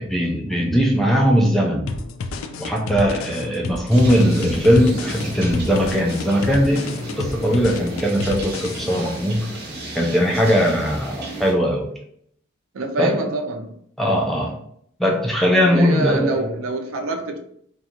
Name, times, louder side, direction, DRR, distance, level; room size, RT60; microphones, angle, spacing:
voice 1, 0.0-2.1 2.6-6.9 7.2-9.5 9.9-11.9 13.0-13.2 14.0-14.6 15.0-16.5, equal, ahead, 0.3 m, -19 dB
sound 1, 1.9-9.2, left 3 dB, 80° left, 0.3 m, -30 dB
sound 2, 3.9-11.5, right 2 dB, 50° right, 0.7 m, -33 dB
voice 2, 12.7-13.7 15.6-17.4, right 2 dB, 85° right, 0.5 m, -26 dB
2.6 x 2.3 x 2.8 m
head